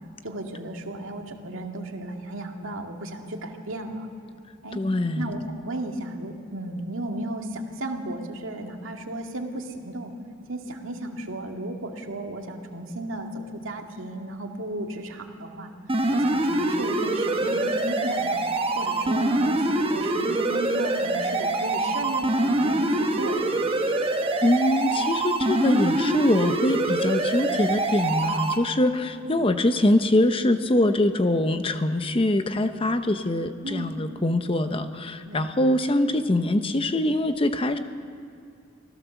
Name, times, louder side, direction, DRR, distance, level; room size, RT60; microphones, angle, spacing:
voice 1, 0.2-4.1 4.6-4.8 5.2-10.1 10.5-15.7 16.1-18.4 18.8-23.7 29.2-29.4 33.6-33.9 35.3-35.5, right 1 dB, 80° right, 3 dB, 2.0 m, -34 dB
voice 2, 4.7-5.3 24.4-37.8, left 1 dB, 25° left, 9 dB, 0.8 m, -23 dB
sound 1, 15.9-28.6, right 2 dB, 25° right, 1.2 m, -25 dB
25.0 x 15.5 x 7.1 m, 2.4 s
head